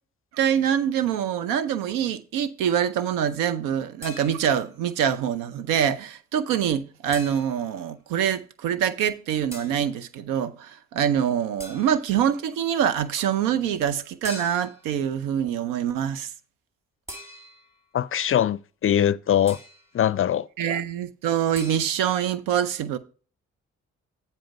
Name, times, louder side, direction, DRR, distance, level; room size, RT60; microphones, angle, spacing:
voice 1, 0.3-16.3 20.6-23.0, right 9 dB, 85° right, 0.7 m, -25 dB
sound 1, 4.0-4.7 7.1-7.8 9.5-9.9 11.6-12.2 14.2-14.9 17.1-17.8 19.5-19.9 21.5-21.9, equal, 10° right, 3.5 m, -42 dB
voice 2, 17.9-19.6 19.9-20.5, left 10 dB, 40° left, 0.4 m, -22 dB
9.0 x 4.3 x 5.2 m
hypercardioid pair, 50°, 32 cm